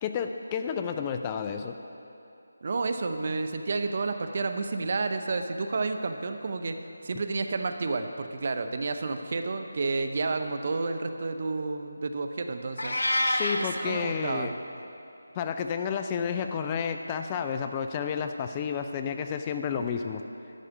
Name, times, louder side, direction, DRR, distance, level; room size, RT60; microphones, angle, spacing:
voice 1, 0.0-1.8 13.0-14.5 15.4-20.2, left 7 dB, 20° left, 7 dB, 0.3 m, -31 dB
voice 2, 2.6-6.8 7.0-13.0 13.5-14.5, right 3 dB, 45° right, 7 dB, 0.7 m, -30 dB
Meow, 12.8-13.6, left 1 dB, 75° left, 1.0 m, -26 dB
11.5 x 5.0 x 8.3 m, 2.8 s
figure-of-eight pair, 160°, 0 cm